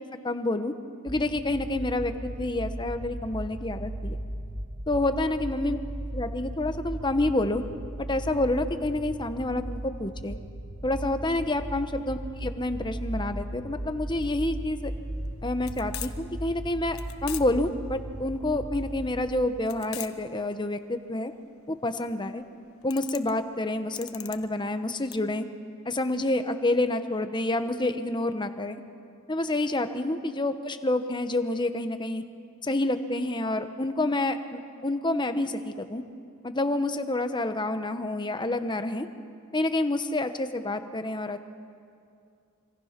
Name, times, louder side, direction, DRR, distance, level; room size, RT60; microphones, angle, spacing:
voice 1, 0.2-0.7 1.0-4.2 4.9-5.8 6.1-7.6 8.0-10.4 10.8-14.9 15.4-21.3 21.7-22.4 22.8-25.5 25.8-28.8 29.3-32.2 32.6-36.0 36.4-39.1 39.5-41.5, left 2 dB, 20° left, 8 dB, 1.0 m, -28 dB
sound 1, 1.1-19.3, right 1 dB, 55° right, 3.2 m, -37 dB
sound 2, 14.2-25.2, left 13 dB, 80° left, 1.1 m, -43 dB
26.0 x 26.0 x 5.9 m, 2.4 s
head